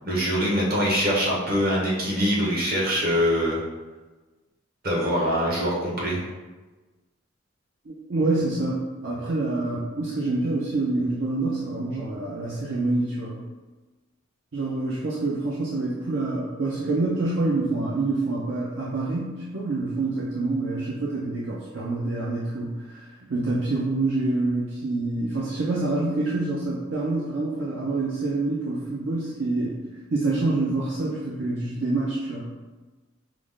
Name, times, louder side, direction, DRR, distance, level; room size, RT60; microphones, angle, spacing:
voice 1, 0.0-3.6 4.8-6.2, equal, 45° right, -5 dB, 1.0 m, -23 dB
voice 2, 7.9-13.4 14.5-23.0 23.3-32.5, right 2 dB, 65° right, -5 dB, 0.6 m, -27 dB
4.8 x 2.1 x 3.7 m, 1.2 s
head